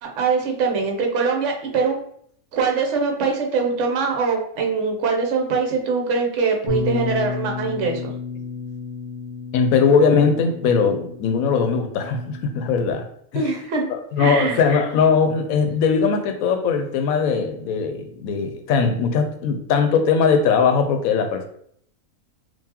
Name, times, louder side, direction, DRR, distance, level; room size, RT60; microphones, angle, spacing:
voice 1, 0.0-2.0 2.5-8.1 13.3-13.9 14.2-14.6, right 4 dB, 65° right, 2 dB, 1.0 m, -22 dB
Bass guitar, 6.7-12.9, left 6 dB, 30° left, 0.7 m, -32 dB
voice 2, 9.5-13.0 13.3-13.4 13.9-21.5, left 5 dB, 80° left, 6 dB, 1.0 m, -20 dB
3.7 x 2.5 x 2.8 m, 0.66 s
omnidirectional pair, 1.5 m